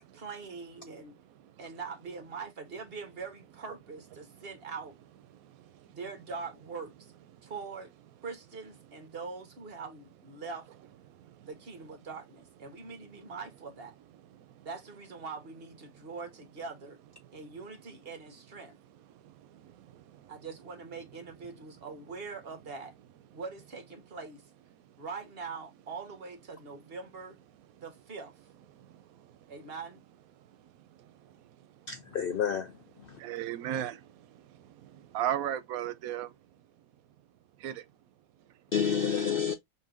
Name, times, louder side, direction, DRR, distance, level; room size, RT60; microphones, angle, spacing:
voice 1, 0.2-1.1 1.6-4.9 5.9-7.1 7.4-7.9 8.2-10.7 11.4-13.9 14.6-17.0 17.3-18.8 20.3-22.9 23.3-24.4 25.0-27.4 27.8-28.3 29.5-30.0, right 4 dB, 45° right, 1.3 m, -42 dB
voice 2, 1.1-1.7 4.2-4.5 5.3-6.0 7.3-7.5 8.9-9.0 11.1-11.5 12.7-13.3 14.3-14.7 15.9-16.1 17.2-17.5 19.0-20.4 21.6-21.7 24.7-25.0 27.7-27.8 28.7-29.5 30.4-31.9 33.1-36.5 37.6-37.9 38.4-38.6, right 11 dB, 90° right, 1.1 m, -40 dB
voice 3, 31.9-33.2 38.7-39.5, left 7 dB, 70° left, 0.5 m, -30 dB
5.3 x 2.7 x 2.5 m
omnidirectional pair, 1.4 m